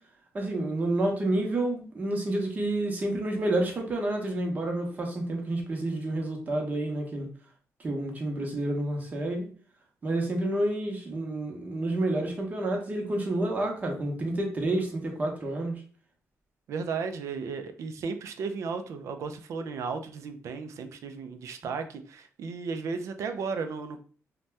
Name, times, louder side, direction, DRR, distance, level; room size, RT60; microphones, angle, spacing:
voice 1, 0.3-7.3 7.8-9.5 10.0-15.8, right 1 dB, 30° right, 1 dB, 0.7 m, -29 dB
voice 2, 16.7-24.0, right 5 dB, 65° right, 8 dB, 0.4 m, -34 dB
2.7 x 2.2 x 3.2 m, 0.42 s
cardioid pair, 140°, 5 cm